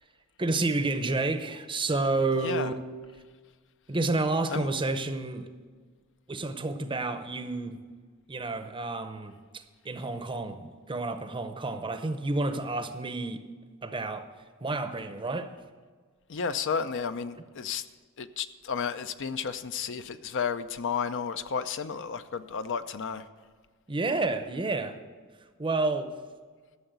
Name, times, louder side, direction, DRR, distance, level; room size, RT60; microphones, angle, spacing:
voice 1, 0.4-2.8 3.9-5.5 6.3-7.8 8.3-13.4 13.8-14.3 14.6-15.5 23.9-25.0 25.6-26.1, right 2 dB, 25° right, 0.7 m, -30 dB
voice 2, 2.4-2.7 4.5-4.7 16.3-17.8 18.2-23.2, left 6 dB, 60° left, 0.6 m, -32 dB
13.0 x 6.9 x 8.0 m
head